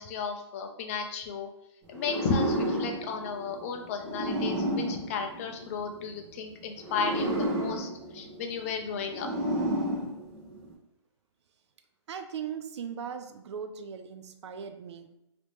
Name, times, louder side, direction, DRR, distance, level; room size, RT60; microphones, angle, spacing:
voice 1, 0.0-1.5 1.9-9.3, left 5 dB, 30° left, 4 dB, 0.4 m, -34 dB
sound 1, 1.9-6.1 6.8-10.7, right 1 dB, 25° right, 0.9 m, -32 dB
voice 2, 12.1-15.1, right 7 dB, 65° right, 7 dB, 0.4 m, -39 dB
2.9 x 2.9 x 3.4 m, 0.85 s
hypercardioid pair, 155°, 15 cm